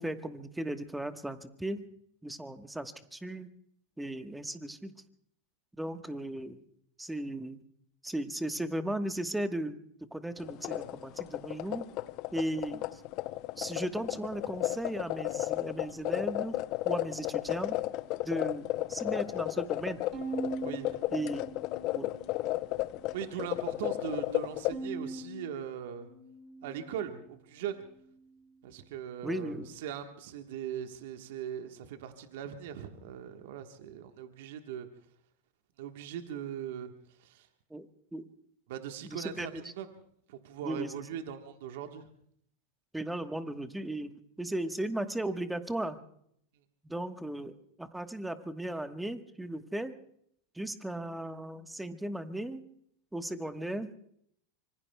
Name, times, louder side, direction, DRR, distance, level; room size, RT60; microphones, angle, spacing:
voice 1, 0.0-1.8 2.2-3.5 4.0-4.9 5.7-6.6 7.0-7.6 8.0-9.8 10.1-11.9 12.3-13.0 13.6-16.6 16.8-17.8 18.2-20.0 21.1-21.4 21.9-22.1 29.2-29.7 37.7-38.3 39.0-39.6 40.6-40.9 42.9-44.1 44.4-46.0 46.8-49.9 50.5-52.6 53.1-53.9, right 1 dB, 5° right, 9 dB, 1.2 m, -36 dB
sound 1, 10.4-24.7, left 17 dB, 50° left, 0.6 m, -33 dB
Bowed string instrument, 20.1-22.5 22.9-23.7 24.7-27.2, right 3 dB, 40° right, 7.0 m, -42 dB
voice 2, 23.1-26.1 26.6-27.8 28.6-34.9 35.8-37.5 38.7-39.9 40.3-42.1, right 9 dB, 70° right, 6 dB, 1.3 m, -40 dB
25.5 x 25.0 x 2.3 m, 0.68 s
hypercardioid pair, 100°, 0 cm